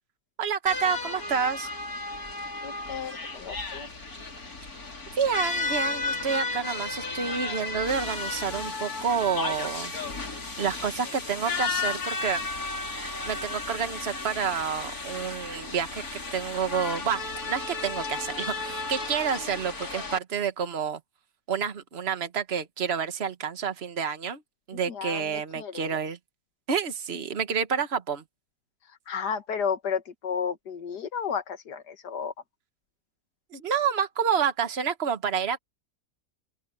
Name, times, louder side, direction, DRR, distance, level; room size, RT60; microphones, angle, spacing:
voice 1, 0.4-1.7 5.1-9.9 10.6-12.4 13.2-17.2 17.5-21.0 21.5-24.4 24.7-26.2 26.7-28.2 33.5-35.6, right 7 dB, 40° right, 1.6 m, -29 dB
sound 1, 0.7-20.2, left 3 dB, 60° left, 4.0 m, -33 dB
voice 2, 2.6-3.9 24.7-25.2 25.6-26.0 29.1-32.3, left 6 dB, 80° left, 2.1 m, -32 dB
open air
omnidirectional pair, 1.7 m